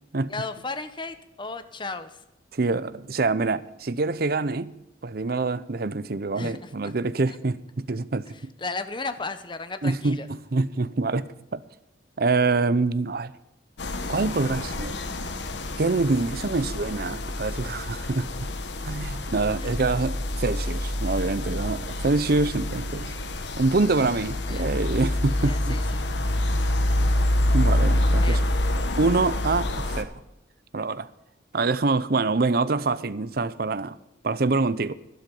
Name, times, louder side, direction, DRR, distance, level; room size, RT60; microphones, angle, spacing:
voice 1, 0.3-2.1 6.3-6.9 8.6-10.3 19.6-19.7 24.4-24.7 25.4-26.0 28.2-28.4, left 3 dB, 25° left, 0.9 m, -35 dB
voice 2, 2.5-4.7 5.0-8.3 9.8-11.6 12.2-13.3 14.1-15.0 15.8-18.3 18.8-23.1 23.6-25.8 27.5-28.4 29.0-30.1 30.7-31.1 31.5-34.0 34.2-34.9, right 3 dB, 55° right, 0.6 m, -25 dB
sound 1, 13.8-30.0, left 1 dB, 80° left, 1.2 m, -27 dB
12.0 x 12.0 x 5.4 m
head